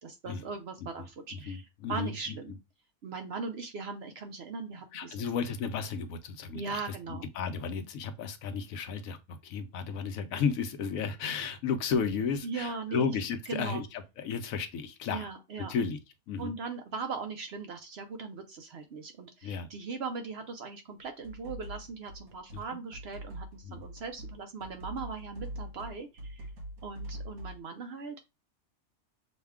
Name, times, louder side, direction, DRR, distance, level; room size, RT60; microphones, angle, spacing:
voice 1, 0.0-2.5 3.0-5.1 6.5-7.3 12.4-13.1 13.5-13.8 15.1-15.7 16.4-26.5 26.8-28.2, right 4 dB, 60° right, 0.7 m, -39 dB
voice 2, 1.3-2.1 4.9-6.8 7.1-15.3 15.6-16.0 16.3-16.5 19.4-19.7 22.5-22.6 23.6-23.8, left 6 dB, 75° left, 1.1 m, -33 dB
sound 1, 21.0-27.6, right 1 dB, 85° right, 1.8 m, -43 dB
6.3 x 2.2 x 3.5 m
omnidirectional pair, 1.5 m